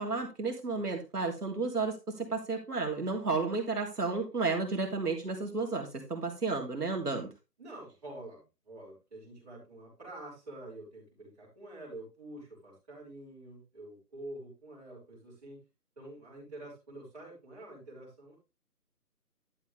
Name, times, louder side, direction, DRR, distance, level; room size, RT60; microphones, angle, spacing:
voice 1, 0.0-7.3, right 3 dB, 70° right, 2 dB, 3.2 m, -32 dB
voice 2, 7.6-15.6 16.0-18.4, right 1 dB, 25° right, -8 dB, 6.0 m, -47 dB
12.0 x 7.5 x 3.5 m, 0.27 s
figure-of-eight pair, 180°, 48 cm